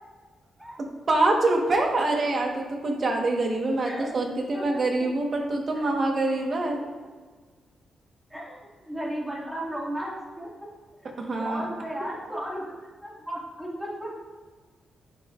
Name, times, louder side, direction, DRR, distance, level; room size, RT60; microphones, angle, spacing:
voice 1, 1.1-6.8 11.2-11.6, right 2 dB, 40° right, 1 dB, 1.3 m, -25 dB
voice 2, 1.7-2.0 3.8-4.1 4.5-4.8 5.7-5.9 6.7-6.8 8.3-8.6 8.9-10.5 11.0-11.1 11.4-14.2, right 1 dB, 5° right, -5 dB, 2.1 m, -35 dB
10.5 x 5.6 x 2.5 m, 1.4 s
cardioid pair, 120°, 0 cm